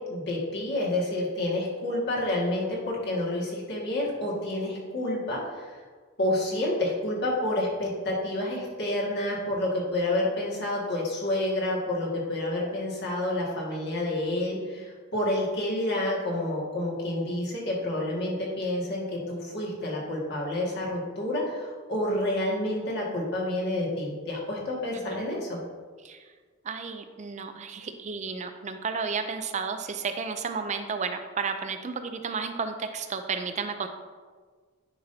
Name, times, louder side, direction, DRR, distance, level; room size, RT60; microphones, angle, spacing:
voice 1, 0.0-5.8 6.2-25.6, left 1 dB, 55° left, -4 dB, 1.9 m, -29 dB
voice 2, 26.6-33.9, right 5 dB, 35° right, 7 dB, 0.4 m, -32 dB
9.7 x 5.4 x 2.8 m, 1.5 s
head